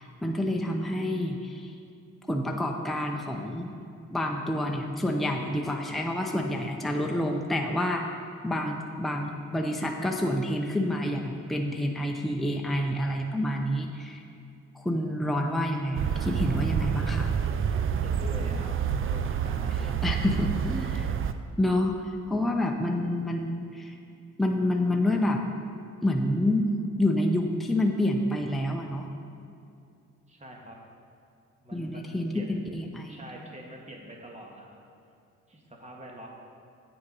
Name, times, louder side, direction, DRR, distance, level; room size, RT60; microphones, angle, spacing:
voice 1, 0.0-1.7 2.3-3.7 4.1-8.1 8.4-14.2 14.7-17.3 20.0-21.1 21.6-22.0 22.3-24.0 24.4-25.4 26.0-26.7 27.0-29.1 31.7-33.2, left 1 dB, ahead, 1 dB, 0.7 m, -28 dB
sound 1, 15.9-21.3, right 7 dB, 45° right, 0.5 m, -28 dB
voice 2, 18.0-20.0 30.3-30.8 31.6-32.6 33.1-34.8 35.5-36.3, right 1 dB, 25° right, -1 dB, 1.6 m, -44 dB
8.2 x 6.9 x 5.4 m, 2.5 s
cardioid pair, 110°, 30 cm